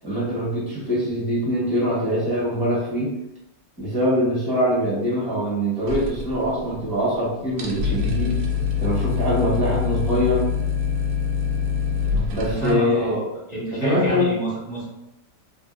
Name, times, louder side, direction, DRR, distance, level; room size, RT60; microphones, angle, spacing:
voice 1, 0.0-3.1 3.8-8.3 8.8-10.5 12.3-13.2 13.7-14.3, equal, 15° right, -8 dB, 1.3 m, -23 dB
sound 1, 5.9-6.9 7.1-7.2 7.5-12.7, left 6 dB, 75° right, 1.0 m, -25 dB
voice 2, 12.4-13.2 13.5-14.9, right 2 dB, 45° right, -8 dB, 0.6 m, -27 dB
3.3 x 2.5 x 2.6 m, 0.86 s
omnidirectional pair, 1.7 m